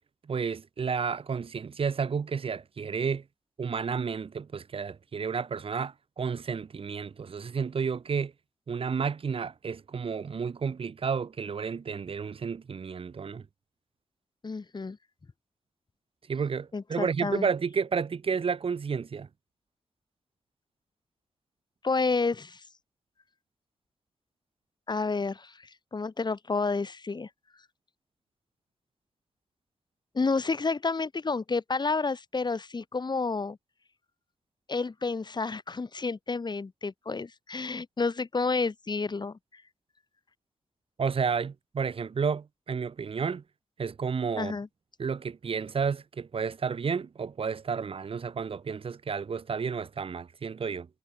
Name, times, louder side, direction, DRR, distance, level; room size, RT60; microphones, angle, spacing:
voice 1, 0.2-3.2 3.6-8.3 8.7-13.5 16.3-19.3 41.0-43.4 43.8-44.6 45.0-50.9, right 6 dB, 60° right, 2.3 m, -31 dB
voice 2, 14.4-15.0 16.7-17.5 21.8-22.6 24.9-27.3 30.1-33.6 34.7-39.6 44.4-44.7, left 4 dB, 45° left, 2.8 m, -30 dB
cardioid pair, 45°, 11 cm